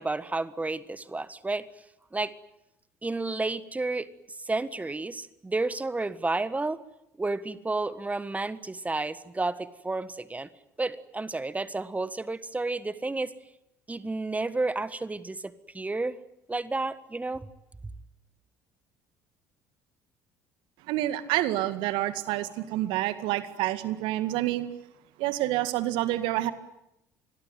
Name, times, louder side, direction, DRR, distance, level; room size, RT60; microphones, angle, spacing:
voice 1, 0.0-1.7 2.1-2.3 3.0-4.1 4.4-6.8 7.2-10.5 10.8-13.3 13.9-16.2 16.5-17.5, right 3 dB, 15° right, 15 dB, 1.5 m, -31 dB
voice 2, 20.9-24.7 25.2-26.5, right 15 dB, 60° right, 12 dB, 2.0 m, -28 dB
27.0 x 22.0 x 9.2 m, 0.85 s
figure-of-eight pair, 55°, 9 cm